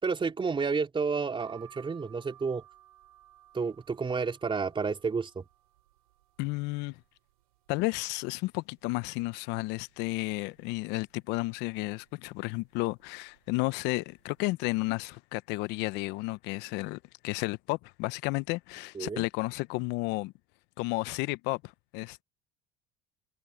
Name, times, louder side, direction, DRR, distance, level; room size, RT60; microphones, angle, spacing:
voice 1, 0.0-2.6 3.5-5.4 18.9-19.2, right 5 dB, 25° right, 3.8 m, -30 dB
sound 1, 1.4-7.1 7.5-8.3 8.7-8.8 9.0-10.1 10.6-10.9 11.7-12.0 12.8-13.1 13.3-13.5, right 13 dB, 85° right, 5.6 m, -57 dB
voice 2, 6.4-7.0 7.7-20.3 20.8-22.2, left 23 dB, 70° left, 0.9 m, -32 dB
hypercardioid pair, 75°, 19 cm